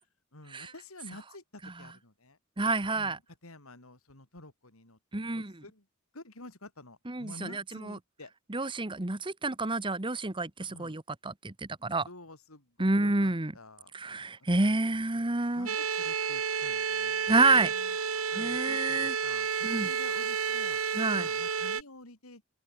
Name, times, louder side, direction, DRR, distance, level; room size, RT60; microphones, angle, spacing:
voice 1, 0.3-2.4 2.9-5.9 6.1-8.3 10.7-11.0 12.0-15.0 15.5-18.0 18.3-20.8 21.1-22.4, left 2 dB, 75° left, 4.4 m, -50 dB
voice 2, 2.6-3.2 5.1-5.5 7.1-8.0 8.5-12.1 12.8-13.5 13.9-15.7 17.3-17.7 18.4-19.1 19.6-19.9 20.9-21.3, right 3 dB, 25° right, 1.2 m, -28 dB
sound 1, 15.7-21.8, right 6 dB, 70° right, 1.7 m, -31 dB
open air
head